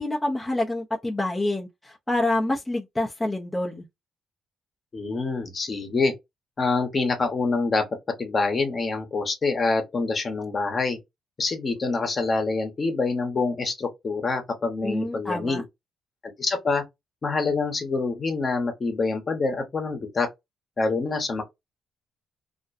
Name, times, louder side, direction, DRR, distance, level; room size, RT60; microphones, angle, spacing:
voice 1, 0.0-3.9 14.8-15.6, left 2 dB, 10° left, 0.6 m, -27 dB
voice 2, 4.9-6.1 6.6-7.8 8.2-11.0 11.4-15.6 16.4-16.8 17.2-20.3 20.8-21.4, left 3 dB, 40° left, 0.9 m, -26 dB
2.5 x 2.2 x 2.5 m
cardioid pair, 90°, 0 cm